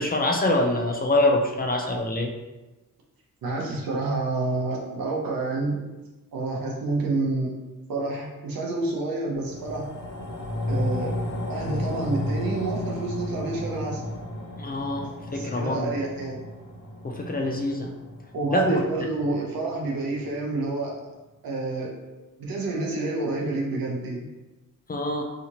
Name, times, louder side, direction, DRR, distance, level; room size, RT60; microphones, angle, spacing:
voice 1, 0.0-2.3 14.6-15.9 17.0-17.9 18.5-18.8 24.9-25.2, left 1 dB, 25° left, 2 dB, 0.4 m, -25 dB
voice 2, 3.4-5.8 6.3-7.5 7.9-9.9 10.7-11.1 11.5-14.0 15.3-16.4 18.3-20.9 21.4-21.9 22.4-24.3, right 2 dB, 85° right, -1 dB, 0.7 m, -28 dB
sound 1, 9.3-19.9 20.3-20.4, left 1 dB, 60° left, 0.7 m, -33 dB
2.8 x 2.4 x 2.8 m, 1.1 s
cardioid pair, 85°, 34 cm